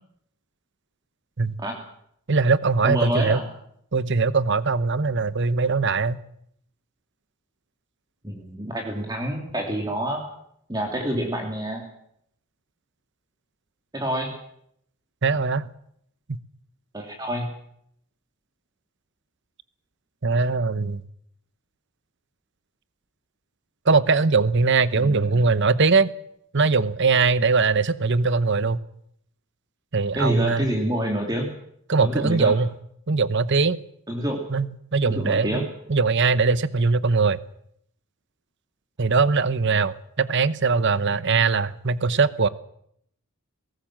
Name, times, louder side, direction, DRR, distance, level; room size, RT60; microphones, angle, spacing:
voice 1, 2.3-3.4 3.9-6.2 15.2-15.7 16.3-16.4 20.2-21.0 23.9-26.1 26.5-28.8 29.9-30.7 31.9-32.7 33.1-33.8 34.5-37.4 39.0-42.5, right 4 dB, 55° right, 16 dB, 0.9 m, -21 dB
voice 2, 2.8-3.5 8.2-10.2 10.7-11.8 13.9-14.3 16.9-17.5 24.9-25.4 30.1-31.5 32.0-32.5 34.1-34.4 35.1-35.6, equal, 20° right, 1 dB, 2.8 m, -27 dB
22.0 x 18.0 x 7.6 m, 0.72 s
head